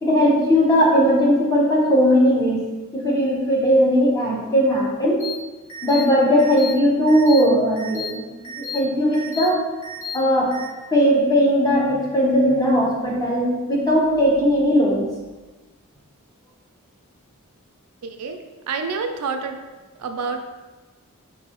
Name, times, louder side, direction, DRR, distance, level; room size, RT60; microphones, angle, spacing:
voice 1, 0.0-2.6 2.9-5.2 5.8-8.3 8.6-9.6 10.1-10.5 10.9-15.1, equal, 15° left, -4 dB, 0.8 m, -18 dB
sound 1, 5.2-5.3 5.7-6.0 6.4-6.7 7.1-7.4 7.8-8.1 8.4-8.8 9.1-9.5 9.8-10.1 10.5-10.6, left 4 dB, 65° left, 1.1 m, -32 dB
voice 2, 18.0-18.4 18.7-19.6 20.0-20.4, right 5 dB, 85° right, 6 dB, 0.4 m, -27 dB
4.6 x 2.7 x 2.9 m, 1.2 s
head